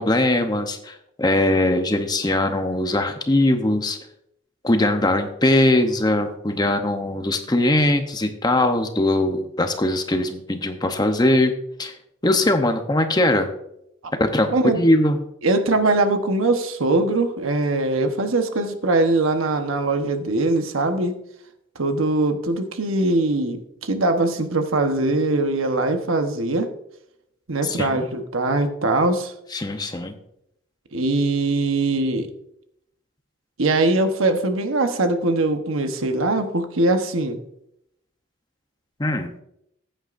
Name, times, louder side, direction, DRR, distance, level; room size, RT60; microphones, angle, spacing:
voice 1, 0.0-4.0 4.6-11.5 11.8-11.9 12.2-13.5 14.2-15.2 27.6-28.0 29.5-30.1 39.0-39.3, left 1 dB, 20° left, 6 dB, 0.8 m, -21 dB
voice 2, 15.4-21.2 21.7-26.7 27.5-29.3 30.9-32.3 33.6-37.4, right 2 dB, 85° right, 6 dB, 1.1 m, -21 dB
15.0 x 9.0 x 2.6 m, 0.77 s
head